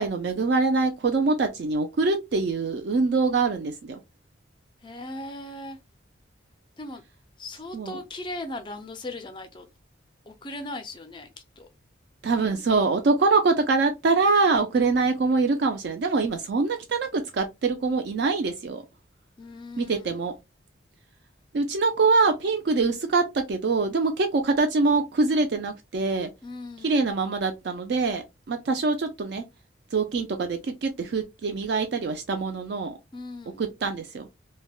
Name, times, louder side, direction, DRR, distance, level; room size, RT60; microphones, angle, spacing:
voice 1, 0.0-4.0 7.7-8.0 12.2-18.8 19.8-20.3 21.5-26.3 26.8-29.4 29.9-33.0 33.6-34.3, right 4 dB, 55° right, 0.4 m, -24 dB
voice 2, 4.8-5.8 6.8-7.0 7.4-9.7 10.3-11.3 11.6-11.7 19.4-20.2 26.4-27.0 33.1-33.6, left 2 dB, 25° left, 0.4 m, -38 dB
3.3 x 2.1 x 2.3 m
head